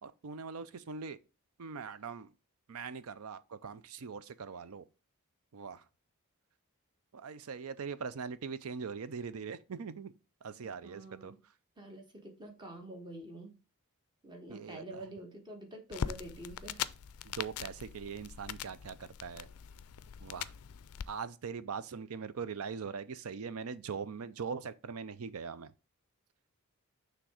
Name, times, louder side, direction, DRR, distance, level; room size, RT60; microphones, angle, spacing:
voice 1, 0.0-1.2 1.6-2.3 2.7-4.8 5.5-5.8 7.1-10.1 10.4-11.3 14.5-15.0 17.2-19.5 20.2-20.5 21.1-25.7, right 5 dB, 75° right, 0.5 m, -41 dB
voice 2, 10.5-11.4 11.8-13.6 14.2-16.8, right 1 dB, 20° right, 1.3 m, -47 dB
sound 1, 15.9-21.1, left 8 dB, 75° left, 0.4 m, -41 dB
6.2 x 3.4 x 4.8 m
head